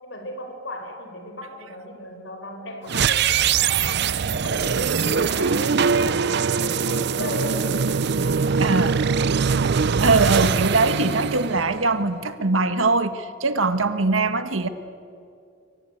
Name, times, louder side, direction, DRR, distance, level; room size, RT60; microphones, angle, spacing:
voice 1, 0.0-7.7 8.1-8.2, left 1 dB, 70° left, 5 dB, 5.0 m, -36 dB
sound 1, 2.9-12.1, right 6 dB, 55° right, 0.6 m, -22 dB
voice 2, 8.6-9.0 9.9-14.7, right 3 dB, 90° right, 10 dB, 1.6 m, -22 dB
27.0 x 23.5 x 8.4 m, 2.5 s
head